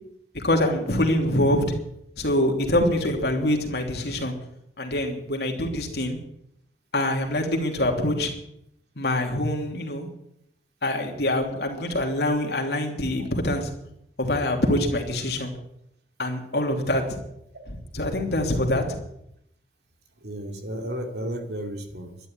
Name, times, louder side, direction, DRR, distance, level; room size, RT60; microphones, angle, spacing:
voice 1, 0.3-1.8 2.2-4.3 4.8-6.2 6.9-8.3 9.0-10.1 10.8-13.7 14.2-15.5 16.2-17.0 17.7-19.0, left 1 dB, 70° left, 2 dB, 3.0 m, -25 dB
voice 2, 20.2-22.2, equal, 70° right, 3 dB, 2.8 m, -33 dB
12.0 x 11.0 x 9.1 m, 0.78 s
head